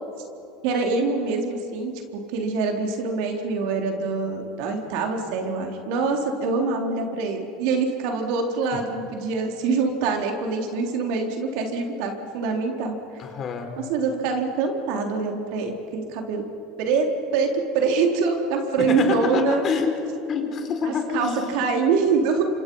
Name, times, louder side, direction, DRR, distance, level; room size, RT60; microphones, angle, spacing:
voice 1, 0.6-13.0 13.9-16.4 16.8-17.1 17.3-19.6 20.8-22.5, right 4 dB, 70° right, 3 dB, 3.7 m, -25 dB
voice 2, 13.2-13.7 18.8-19.9 20.3-21.4, left 6 dB, 40° left, 5 dB, 3.8 m, -27 dB
28.5 x 25.5 x 5.6 m, 2.8 s
supercardioid pair, 100°, 0 cm